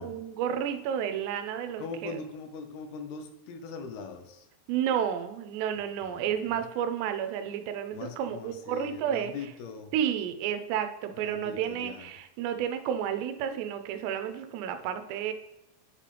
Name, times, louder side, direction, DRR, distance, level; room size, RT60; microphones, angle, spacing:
voice 1, 0.0-2.2 4.7-9.3 9.9-15.3, right 9 dB, 85° right, 8 dB, 2.9 m, -31 dB
voice 2, 1.8-4.5 6.0-6.6 7.9-9.9 11.2-12.1, left 5 dB, 75° left, 7 dB, 2.6 m, -41 dB
10.5 x 5.2 x 3.3 m, 0.90 s
omnidirectional pair, 4.8 m